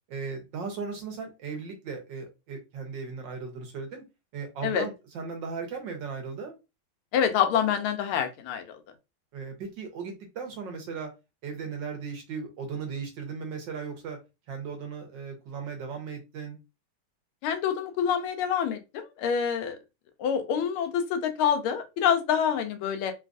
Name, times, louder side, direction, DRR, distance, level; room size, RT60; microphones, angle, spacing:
voice 1, 0.1-4.0 4.3-6.5 9.3-11.1 11.4-14.2 14.5-16.6, right 5 dB, 65° right, 4 dB, 1.5 m, -37 dB
voice 2, 7.1-8.8 17.4-19.8 20.2-23.1, left 8 dB, 80° left, 7 dB, 1.5 m, -26 dB
3.9 x 2.4 x 2.5 m, 0.25 s
omnidirectional pair, 2.3 m